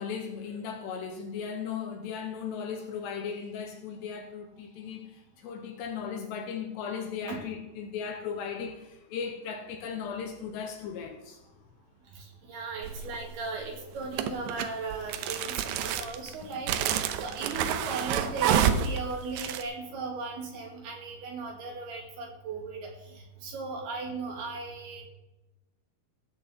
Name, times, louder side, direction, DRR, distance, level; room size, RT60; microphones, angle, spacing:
voice 1, 0.0-11.5, left 6 dB, 75° left, 2.8 m, -37 dB
voice 2, 12.1-25.1, right 3 dB, 60° right, 4.0 m, -37 dB
sound 1, 12.8-13.3 14.1-19.6, right 9 dB, 80° right, 2.6 m, -28 dB
16.0 x 6.1 x 7.9 m
omnidirectional pair, 5.6 m